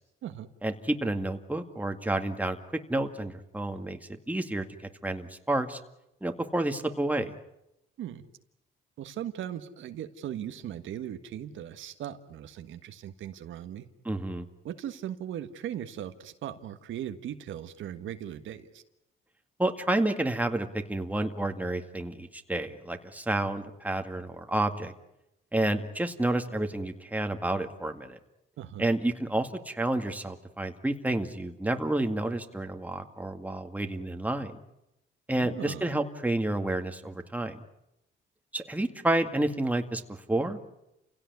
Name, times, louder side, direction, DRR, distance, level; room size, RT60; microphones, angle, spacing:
voice 1, 0.6-4.0 4.3-4.6 5.0-5.8 6.2-7.3 14.1-14.5 19.6-24.9 25.5-28.2 28.8-34.6 35.3-37.6 38.5-40.8, right 1 dB, 10° right, 6 dB, 2.1 m, -30 dB
voice 2, 9.0-13.9 14.6-18.8 28.6-28.9 35.3-36.0, right 10 dB, 75° right, 8 dB, 1.6 m, -38 dB
28.5 x 17.0 x 9.6 m, 0.88 s
cardioid pair, 90°, 20 cm